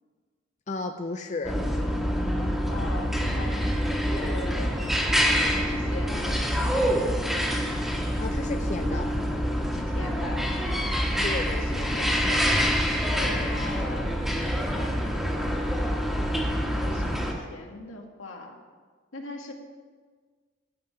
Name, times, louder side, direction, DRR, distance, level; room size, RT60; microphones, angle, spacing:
voice 1, 0.7-1.6 8.2-9.1 11.2-11.9, left 3 dB, 35° left, 5 dB, 0.5 m, -33 dB
sound 1, 1.4-17.3, equal, ahead, 1.7 m, -26 dB
voice 2, 2.7-3.6 4.1-4.8 5.7-6.9 9.7-10.5 11.1-12.5 13.2-14.1 16.6-18.5 19.1-19.5, left 2 dB, 80° left, 1 dB, 1.9 m, -40 dB
12.0 x 5.7 x 8.9 m, 1.5 s
head